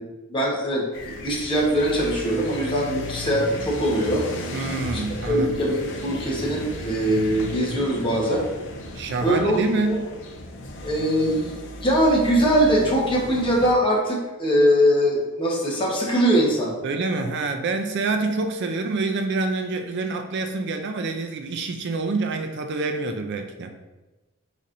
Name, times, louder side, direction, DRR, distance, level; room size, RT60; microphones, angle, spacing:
voice 1, 0.3-0.9 1.2-4.2 4.6-4.7 4.9-8.4 9.2-10.0 10.8-11.5 11.8-16.7, equal, 25° left, -3 dB, 1.0 m, -22 dB
sound 1, 0.9-13.7, left 1 dB, 60° left, 0.6 m, -35 dB
voice 2, 4.5-5.7 8.9-10.1 16.8-23.7, right 3 dB, 55° right, 6 dB, 0.4 m, -27 dB
5.0 x 4.2 x 2.5 m, 1.1 s
head